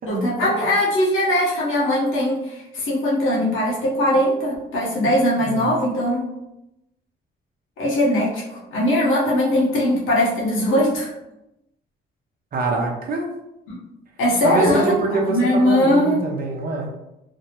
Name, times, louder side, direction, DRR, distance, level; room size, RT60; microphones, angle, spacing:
voice 1, 0.1-6.3 7.8-11.1 13.7-13.8 14.2-16.2, left 1 dB, 80° left, -5 dB, 1.0 m, -20 dB
voice 2, 5.4-5.7 12.5-13.3 14.4-16.9, right 3 dB, 45° right, 0 dB, 0.7 m, -24 dB
2.6 x 2.0 x 2.8 m, 0.90 s
cardioid pair, 90°, 20 cm